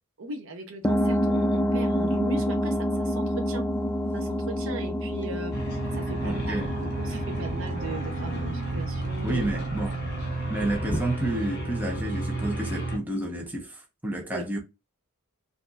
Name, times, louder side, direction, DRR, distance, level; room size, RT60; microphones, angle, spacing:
voice 1, 0.2-3.6 4.1-5.5 5.9-9.4 14.3-14.5, right 2 dB, 60° right, 0.8 m, -38 dB
sound 1, 0.8-9.0, equal, 10° left, 0.4 m, -28 dB
sound 2, 5.5-13.0, right 2 dB, 45° left, 1.6 m, -31 dB
voice 2, 6.2-6.7 7.2-7.4 9.2-10.0 10.5-14.6, right 1 dB, 10° right, 0.9 m, -30 dB
4.3 x 2.7 x 2.4 m
head